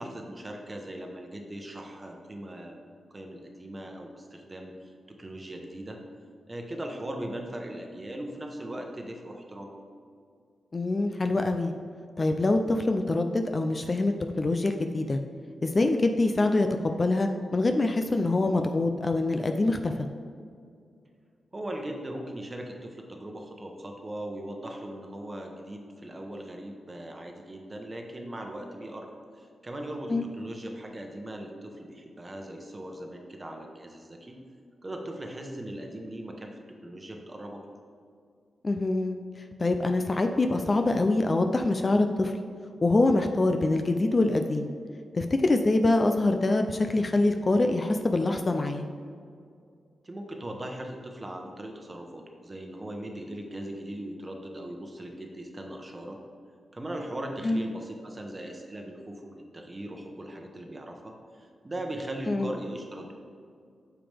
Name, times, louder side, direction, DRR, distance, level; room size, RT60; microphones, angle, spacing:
voice 1, 0.0-4.7 5.1-6.0 6.5-9.7 21.5-34.4 34.8-37.6 50.0-56.2 56.7-63.1, right 1 dB, 25° right, 2 dB, 1.0 m, -39 dB
voice 2, 10.7-11.7 12.2-15.2 15.6-20.1 30.1-30.3 38.6-39.2 39.6-42.3 42.8-44.7 45.1-48.8 57.4-57.6 62.3-62.5, left 2 dB, 30° left, 5 dB, 0.4 m, -25 dB
8.9 x 6.9 x 3.4 m, 2.3 s
wide cardioid pair, 105°, 0 cm